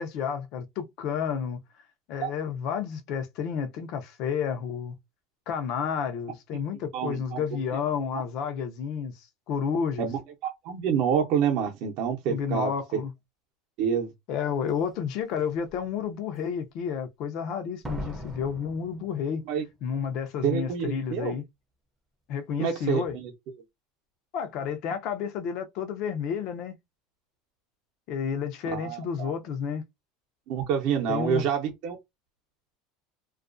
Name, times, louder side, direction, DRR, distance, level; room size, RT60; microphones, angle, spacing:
voice 1, 0.0-1.6 2.1-5.0 5.5-10.1 12.3-13.1 14.3-19.4 19.8-21.4 22.3-23.2 24.3-26.8 28.1-29.8 31.1-31.4, left 7 dB, 55° left, 0.5 m, -31 dB
voice 2, 6.9-7.4 10.0-12.7 13.8-14.1 19.5-19.6 20.4-21.3 22.6-23.3 28.7-29.3 30.5-32.0, right 7 dB, 60° right, 0.7 m, -27 dB
Slam, 14.7-14.8 15.4-15.8 17.8-19.7 20.0-20.1, equal, 10° right, 0.5 m, -40 dB
2.3 x 2.2 x 2.4 m
supercardioid pair, 130°, 0 cm